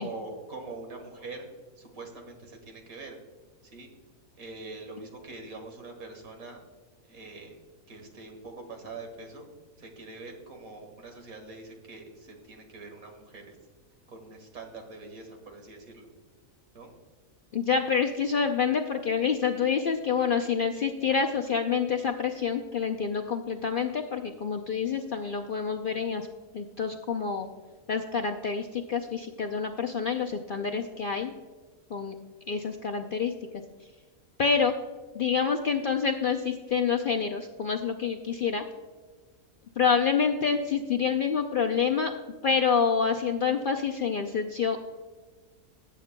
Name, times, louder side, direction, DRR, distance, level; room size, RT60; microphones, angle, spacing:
voice 1, 0.0-1.5 1.8-3.2 3.6-3.9 4.4-6.6 7.1-7.5 7.9-9.5 9.8-13.6 14.1-16.1 16.7-16.9, right 3 dB, 80° right, 3 dB, 2.0 m, -43 dB
voice 2, 17.5-26.3 26.5-27.5 27.9-31.3 31.9-32.1 32.5-33.3 34.4-34.7 35.1-38.6 39.8-42.1 42.4-44.8, left 6 dB, 60° left, 3 dB, 0.5 m, -27 dB
18.5 x 8.4 x 2.2 m, 1.4 s
omnidirectional pair, 1.5 m